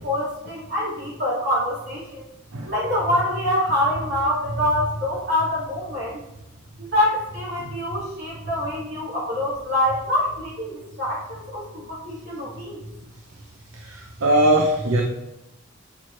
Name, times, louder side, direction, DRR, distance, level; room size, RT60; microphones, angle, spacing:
voice 1, 0.0-2.2 2.6-6.2 6.8-12.8, left 1 dB, 55° right, -7 dB, 2.2 m, -25 dB
voice 2, 13.8-15.0, right 1 dB, 75° right, 1 dB, 0.7 m, -20 dB
7.9 x 4.6 x 3.2 m, 0.89 s
head